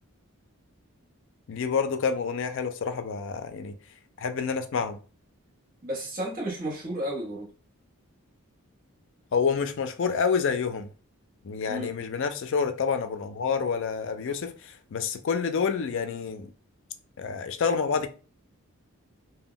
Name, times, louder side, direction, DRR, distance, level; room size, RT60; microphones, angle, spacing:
voice 1, 1.5-3.8 4.2-5.0 9.3-10.9 11.4-16.5 17.2-18.1, left 6 dB, 60° left, 0.4 m, -28 dB
voice 2, 5.8-7.5 11.7-11.9, right 1 dB, 40° right, 0.9 m, -32 dB
2.1 x 2.1 x 3.7 m
head